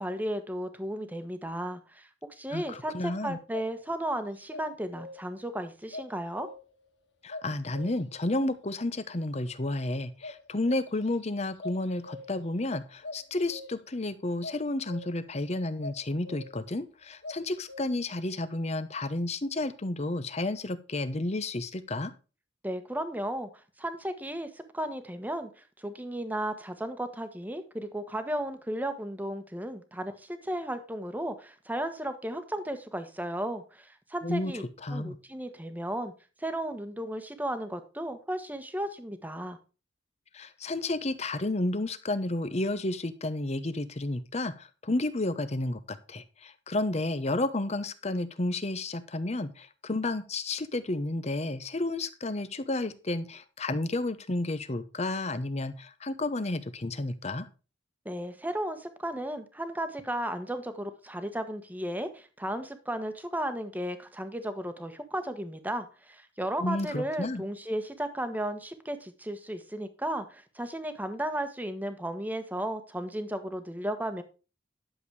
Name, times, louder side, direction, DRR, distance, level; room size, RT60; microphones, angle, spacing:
voice 1, 0.0-6.5 22.6-23.5 23.8-34.6 34.9-36.1 36.4-39.6 58.0-74.2, right 1 dB, 10° right, 9 dB, 1.2 m, -34 dB
voice 2, 2.5-3.4 7.2-22.1 34.2-34.5 34.8-35.2 40.3-57.5 66.6-67.4, left 2 dB, 35° left, 13 dB, 0.9 m, -31 dB
sound 1, 3.5-3.8 4.5-5.4 5.9-6.8 7.3-8.2 10.2-11.2 11.5-12.6 13.0-14.0 14.4-15.3 15.8-16.7 17.2-17.8, left 2 dB, 70° left, 1.6 m, -43 dB
11.0 x 7.2 x 4.8 m, 0.33 s
head